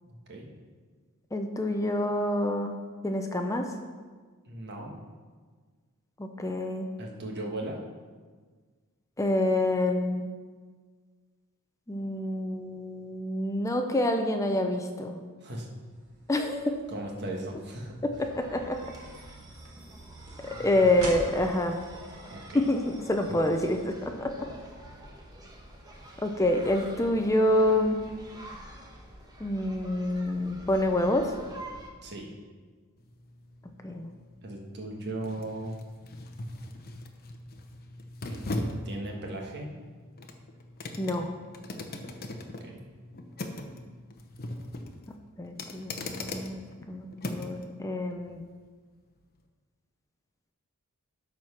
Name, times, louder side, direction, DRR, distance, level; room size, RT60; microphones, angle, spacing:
voice 1, 0.0-0.5 4.4-5.0 7.0-7.8 15.4-15.7 16.9-18.0 19.5-19.6 20.5-20.8 22.3-22.6 23.3-23.4 32.0-32.3 34.4-35.7 38.3-39.7 42.4-42.9, right 1 dB, 50° right, 0 dB, 1.6 m, -38 dB
voice 2, 1.3-3.7 6.2-6.9 9.2-10.2 11.9-15.2 16.3-16.8 18.0-18.9 20.4-21.8 22.5-24.5 26.2-28.0 29.4-31.3 33.8-34.1 41.0-41.3 45.4-46.6 46.9-48.4, left 1 dB, 15° left, 4 dB, 0.5 m, -27 dB
sound 1, 15.9-22.9, right 1 dB, 70° right, 2.1 m, -46 dB
sound 2, 18.1-31.9, right 1 dB, 20° right, 1.1 m, -46 dB
sound 3, 33.0-47.7 48.1-48.2, left 2 dB, 45° left, 0.8 m, -40 dB
12.5 x 4.6 x 5.8 m, 1.5 s
head